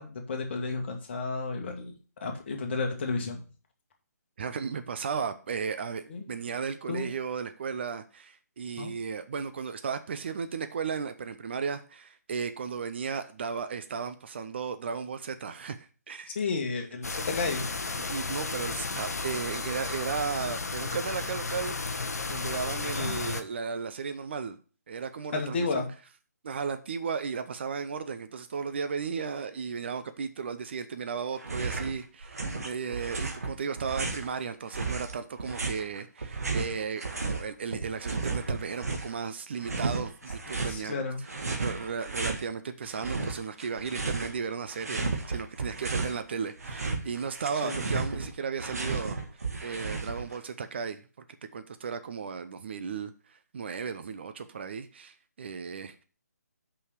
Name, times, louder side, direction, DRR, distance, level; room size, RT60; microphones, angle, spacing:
voice 1, 0.0-1.9 2.2-3.5 6.1-6.3 6.9-7.1 8.8-8.9 16.4-18.0 22.8-23.2 25.3-25.9 40.5-41.2 47.6-47.8, left 4 dB, 40° left, 1.8 m, -32 dB
voice 2, 4.4-16.3 18.1-22.0 22.3-24.6 24.9-25.8 26.4-41.0 41.6-51.0 51.5-53.1 53.5-56.0, right 6 dB, 40° right, 0.6 m, -35 dB
sound 1, 17.0-23.4, left 4 dB, 65° left, 0.9 m, -33 dB
sound 2, 31.4-31.9 32.2-34.3 34.7-37.4 37.7-39.2 39.6-40.8 41.3-42.4 42.8-44.4 44.7-46.2 46.5-50.4, right 3 dB, 60° right, 1.7 m, -33 dB
5.6 x 5.4 x 6.4 m
figure-of-eight pair, 140°, 9 cm